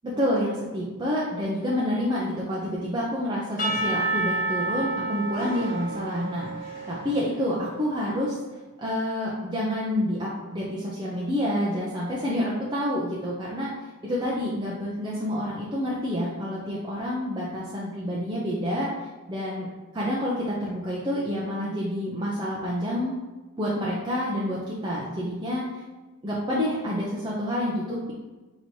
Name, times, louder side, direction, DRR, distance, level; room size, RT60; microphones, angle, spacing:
voice 1, 0.0-8.3 8.8-13.7 14.0-18.9 19.3-19.7 19.9-23.2 23.6-25.8 26.2-28.1, equal, 20° right, -6 dB, 0.5 m, -28 dB
Percussion / Church bell, 3.6-7.7, right 2 dB, 40° left, 1.1 m, -30 dB
6.1 x 2.9 x 2.7 m, 1.2 s
head